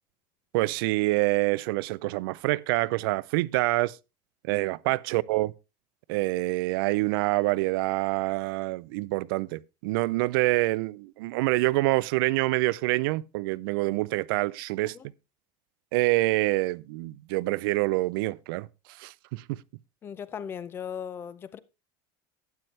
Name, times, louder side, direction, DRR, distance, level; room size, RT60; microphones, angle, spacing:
voice 1, 0.5-4.0 4.5-5.5 6.1-15.0 15.9-18.7 19.0-19.6, right 21 dB, 85° right, 0.5 m, -26 dB
voice 2, 20.0-21.6, left 8 dB, 20° left, 0.4 m, -37 dB
12.0 x 9.3 x 3.2 m
cardioid pair, 175°, 12 cm